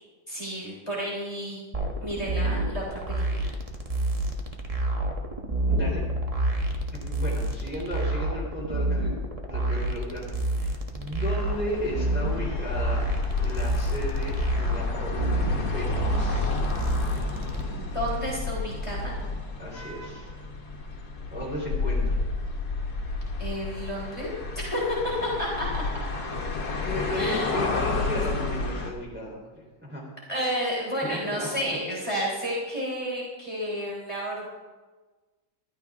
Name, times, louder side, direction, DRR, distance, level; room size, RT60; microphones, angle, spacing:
voice 1, 0.3-1.6 2.0-3.5 12.4-12.6 17.8-19.1 23.4-24.3 24.5-25.8 27.2-27.6 30.3-34.5, equal, 15° left, -4 dB, 3.7 m, -31 dB
sound 1, 1.7-17.6, right 2 dB, 25° right, 1.1 m, -29 dB
voice 2, 5.7-6.1 6.9-9.1 9.4-13.1 13.3-16.6 19.6-20.3 21.3-22.2 23.0-23.1 26.8-29.4 29.8-30.1 31.0-31.8, equal, 5° right, -5 dB, 3.4 m, -34 dB
sound 2, 5.7-8.2, equal, 60° right, 2.0 m, -33 dB
sound 3, 11.4-28.9, left 3 dB, 60° left, 2.0 m, -31 dB
14.5 x 13.0 x 3.6 m, 1.3 s
omnidirectional pair, 1.9 m